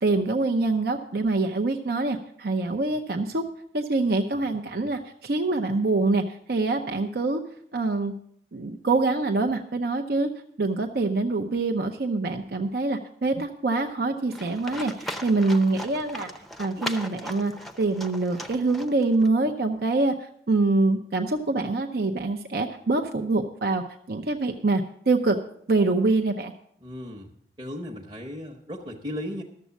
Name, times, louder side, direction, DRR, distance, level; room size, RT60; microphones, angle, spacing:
voice 1, 0.0-3.4 3.7-7.4 7.7-8.1 8.5-10.3 10.6-16.3 16.6-17.5 17.8-25.4 25.7-26.5, right 3 dB, 60° right, 5 dB, 0.6 m, -25 dB
Livestock farm animals working animals, 14.3-19.3, equal, ahead, 0.6 m, -38 dB
voice 2, 26.8-27.3 27.6-29.4, left 1 dB, 25° right, -2 dB, 1.0 m, -36 dB
12.5 x 7.2 x 7.0 m, 0.67 s
head